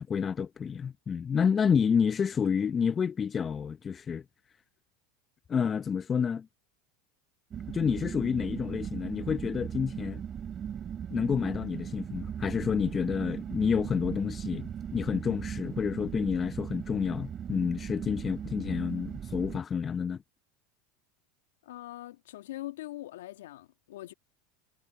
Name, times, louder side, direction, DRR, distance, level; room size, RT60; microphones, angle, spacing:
voice 1, 0.1-4.2 5.5-6.5 7.7-10.2 11.1-20.2, left 6 dB, 30° left, 0.7 m, -29 dB
sound 1, 7.5-19.6, right 8 dB, 35° right, 3.1 m, -38 dB
voice 2, 21.6-24.1, left 16 dB, 75° left, 2.0 m, -42 dB
hypercardioid pair, 95°, 0 cm